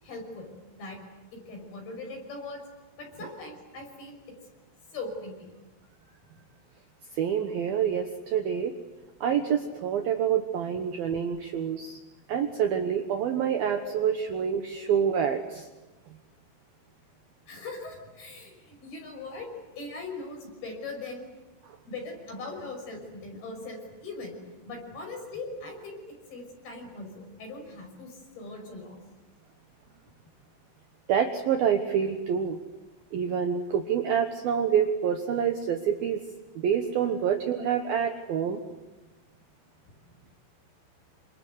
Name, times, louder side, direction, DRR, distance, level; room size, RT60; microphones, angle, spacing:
voice 1, 0.0-1.0 1.3-2.6 3.0-4.2 4.9-5.5 13.8-14.0 14.7-14.9 17.5-19.5 19.8-21.3 21.9-24.4 24.6-29.0 39.9-40.2, left 3 dB, 50° left, 2 dB, 7.6 m, -40 dB
voice 2, 7.1-8.7 9.2-12.0 12.3-15.7 31.1-32.6 33.1-36.2 36.6-38.6, right 8 dB, 70° right, 6 dB, 2.4 m, -27 dB
28.0 x 26.0 x 8.1 m, 1.1 s
omnidirectional pair, 5.8 m